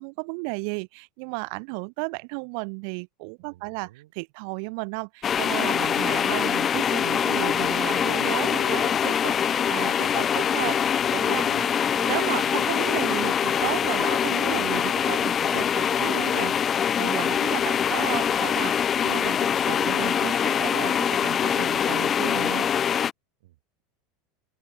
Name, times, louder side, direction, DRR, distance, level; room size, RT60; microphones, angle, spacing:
voice 1, 0.0-3.9 4.2-22.7, right 40 dB or more, 60° right, 0.9 m, -34 dB
voice 2, 3.4-4.1 5.9-6.4 17.7-18.2 23.4-23.8, right 16 dB, 85° right, 4.5 m, -54 dB
sound 1, 5.2-23.1, left 8 dB, 25° left, 0.3 m, -24 dB
open air
supercardioid pair, 140°, 0 cm